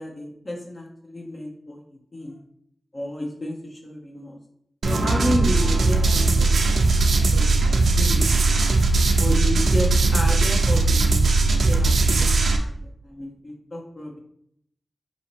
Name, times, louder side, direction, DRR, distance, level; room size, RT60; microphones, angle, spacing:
voice 1, 0.0-2.4 2.9-4.4 4.9-6.8 7.1-7.5 7.9-8.7 9.2-11.3 11.7-14.1, left 1 dB, 45° left, -1 dB, 0.8 m, -32 dB
sound 1, 4.8-12.6, right 3 dB, 80° right, 0.5 m, -19 dB
4.0 x 2.7 x 4.5 m, 0.72 s
cardioid pair, 50°, 0 cm